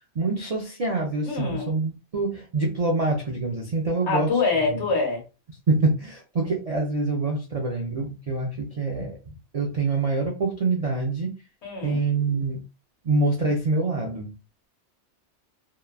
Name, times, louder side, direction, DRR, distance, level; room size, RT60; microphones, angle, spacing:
voice 1, 0.2-4.3 5.7-9.2 9.5-11.3 11.8-12.6 13.1-14.3, right 3 dB, 60° right, 0.3 m, -25 dB
voice 2, 1.2-1.7 4.0-5.2 11.6-12.0, left 4 dB, 65° left, 1.3 m, -25 dB
2.9 x 2.2 x 2.3 m
omnidirectional pair, 1.2 m